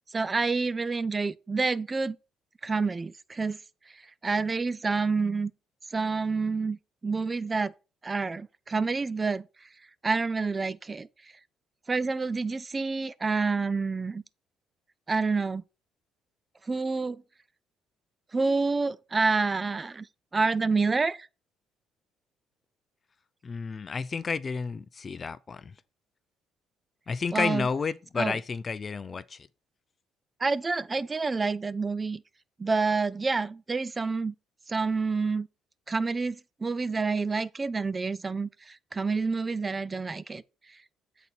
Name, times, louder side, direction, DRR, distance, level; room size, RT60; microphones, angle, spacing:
voice 1, 0.1-2.2 2.6-3.6 4.2-5.5 5.9-6.8 7.0-7.7 8.0-9.5 10.0-11.1 11.9-14.2 15.1-15.6 16.7-17.2 18.3-20.1 20.3-21.3 27.3-27.7 28.2-28.4 30.4-32.2 32.6-34.3 34.7-35.5 35.9-40.4, right 4 dB, 30° right, 0.4 m, -28 dB
voice 2, 23.4-25.7 27.1-29.5, left 5 dB, 40° left, 0.4 m, -31 dB
6.6 x 4.1 x 4.3 m
supercardioid pair, 65°, 0 cm